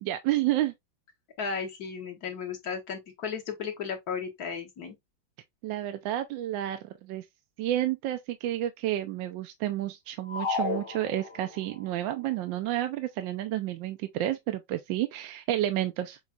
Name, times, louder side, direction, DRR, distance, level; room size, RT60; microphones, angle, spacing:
voice 1, 0.0-0.7 5.6-7.2 7.6-16.2, right 13 dB, 80° right, 1.3 m, -30 dB
voice 2, 1.4-5.0, left 6 dB, 55° left, 1.7 m, -35 dB
sound 1, 10.3-11.7, left 4 dB, 85° left, 0.4 m, -32 dB
7.1 x 3.1 x 2.4 m
omnidirectional pair, 2.1 m